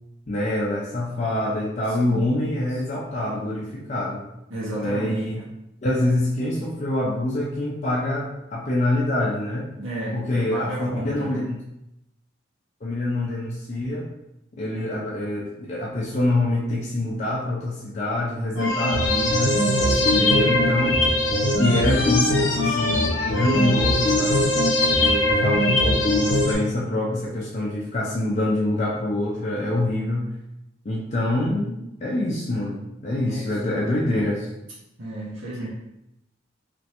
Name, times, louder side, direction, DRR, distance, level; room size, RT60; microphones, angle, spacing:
voice 1, 0.3-4.3 4.8-5.4 5.8-9.7 10.1-11.6 12.8-14.1 14.6-19.6 20.0-21.0 21.6-24.5 25.0-30.3 30.8-34.5, left 1 dB, 35° left, -4 dB, 0.4 m, -25 dB
voice 2, 4.5-5.2 9.8-11.4 19.9-20.4 33.2-33.9 35.0-35.7, right 1 dB, 90° right, -7 dB, 0.8 m, -33 dB
sound 1, 18.6-26.6, left 1 dB, 80° left, 0.7 m, -21 dB
3.2 x 2.5 x 2.8 m, 0.86 s
head